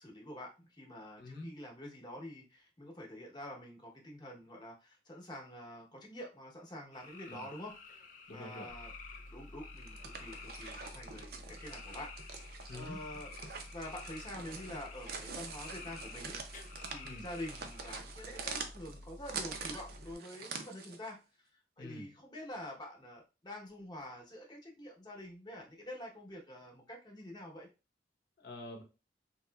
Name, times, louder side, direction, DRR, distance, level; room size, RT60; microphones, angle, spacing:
voice 1, 0.0-8.0 8.3-8.9 9.3-13.3 13.6-27.7, left 1 dB, 25° left, 0 dB, 0.9 m, -47 dB
voice 2, 1.2-1.5 7.2-7.5 8.3-8.7 12.7-13.0 17.0-17.3 21.8-22.1 28.4-28.8, left 2 dB, 65° left, 2 dB, 0.8 m, -46 dB
sound 1, 6.9-18.0, left 5 dB, 45° left, 0.4 m, -52 dB
sound 2, 8.7-20.1, left 1 dB, ahead, 0.7 m, -52 dB
sound 3, 9.8-21.1, right 5 dB, 60° right, 0.5 m, -45 dB
3.6 x 2.9 x 2.3 m, 0.30 s
head